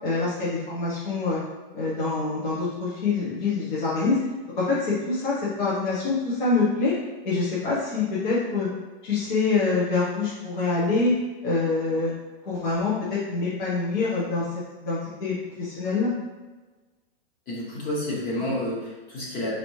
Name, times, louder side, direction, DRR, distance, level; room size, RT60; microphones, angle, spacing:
voice 1, 0.0-1.4 1.7-4.2 4.6-6.9 7.2-8.7 9.0-11.1 11.4-12.1 12.5-14.4 14.8-16.1, left 3 dB, 55° left, -8 dB, 1.2 m, -25 dB
voice 2, 17.5-19.6, left 1 dB, 20° left, -5 dB, 0.8 m, -30 dB
5.0 x 2.8 x 3.1 m, 1.2 s
supercardioid pair, 175°, 30 cm